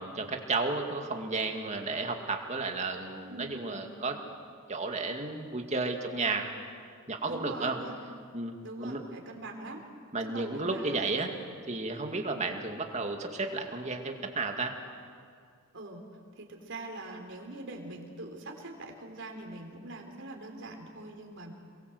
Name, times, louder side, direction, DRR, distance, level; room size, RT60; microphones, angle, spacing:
voice 1, 0.0-4.2 4.7-6.5 7.1-7.8 8.3-8.5 8.8-9.0 10.1-11.3 11.7-14.8, right 3 dB, 35° right, 3 dB, 2.3 m, -33 dB
voice 2, 3.3-3.9 7.2-7.9 8.6-9.8 10.3-11.2 12.1-12.3 15.7-16.1 16.4-21.5, right 2 dB, 60° right, 3 dB, 3.7 m, -43 dB
28.0 x 22.5 x 8.0 m, 2.2 s
head